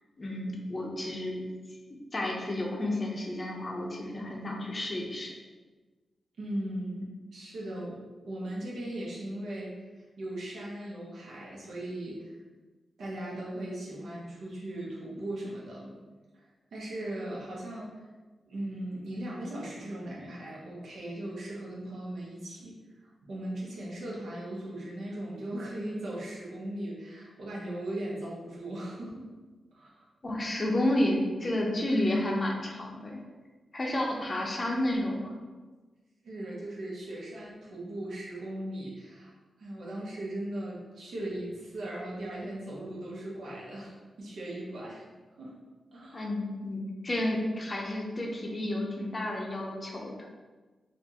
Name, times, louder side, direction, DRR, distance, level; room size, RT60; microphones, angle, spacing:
voice 1, 0.2-1.4 2.1-5.3 30.2-33.2 33.7-35.3 46.1-50.2, left 1 dB, 25° left, -1 dB, 0.6 m, -31 dB
voice 2, 6.4-12.3 13.0-15.9 16.3-16.4 16.7-17.9 18.5-22.8 23.2-29.3 29.7-30.1 36.2-39.3 39.6-45.1 45.4-45.5 45.9-46.3, right 1 dB, 80° right, -5 dB, 1.0 m, -38 dB
4.4 x 2.5 x 2.8 m, 1.3 s
wide cardioid pair, 150°, 0 cm